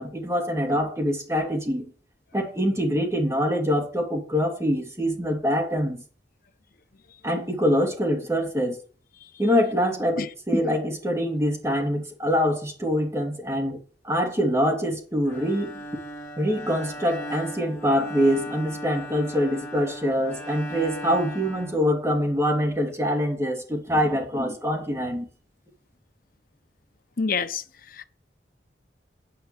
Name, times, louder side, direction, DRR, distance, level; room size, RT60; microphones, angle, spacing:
voice 1, 0.0-1.9 2.3-6.0 7.2-8.8 9.4-13.8 14.0-15.8 16.4-25.3, equal, 15° right, 2.7 m, -24 dB
Bowed string instrument, 15.2-22.4, equal, 15° left, 4.1 m, -38 dB
voice 2, 27.2-28.1, left 5 dB, 50° left, 0.8 m, -28 dB
9.4 x 5.7 x 7.6 m
head